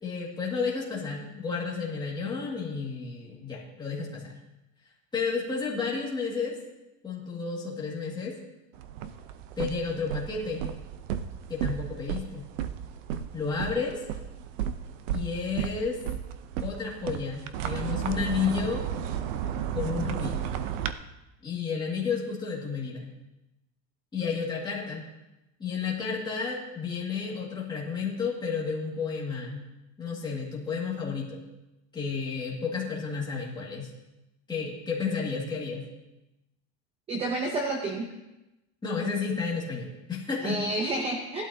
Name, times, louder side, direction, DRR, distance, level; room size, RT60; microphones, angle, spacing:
voice 1, 0.0-4.4 5.1-6.6 7.0-8.3 9.6-10.6 11.5-12.5 13.3-14.0 15.1-16.0 16.6-18.8 19.7-20.4 21.4-23.1 24.1-25.1 25.6-29.7 30.0-31.5 31.9-33.9 34.5-35.9 38.8-40.6, left 5 dB, 10° left, -4 dB, 2.1 m, -31 dB
sound 1, 8.7-20.9, right 9 dB, 90° right, 0.8 m, -34 dB
voice 2, 37.1-38.1 40.4-41.5, right 2 dB, 15° right, 1 dB, 0.8 m, -30 dB
17.0 x 12.0 x 2.8 m, 0.98 s
cardioid pair, 175°, 37 cm